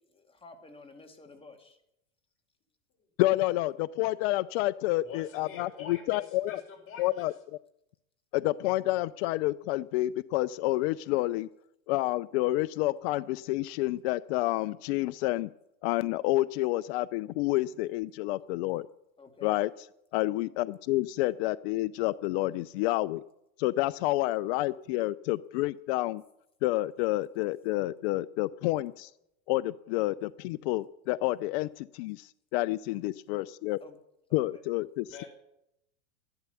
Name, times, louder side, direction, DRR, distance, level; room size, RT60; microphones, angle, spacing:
voice 1, 0.1-1.8 19.2-19.6 33.8-34.0 34.3-34.6, left 3 dB, 15° left, 4 dB, 2.3 m, -51 dB
voice 2, 3.2-6.6 7.0-7.3 8.3-11.5 11.9-15.5 15.8-18.9 19.4-19.7 20.1-23.2 23.6-26.2 26.6-29.1 29.5-33.8 34.3-35.2, left 17 dB, 55° left, 16 dB, 0.5 m, -29 dB
voice 3, 5.0-7.3 35.1-35.3, left 6 dB, 35° left, 1 dB, 5.9 m, -45 dB
13.5 x 12.0 x 7.0 m, 0.81 s
supercardioid pair, 120°, 39 cm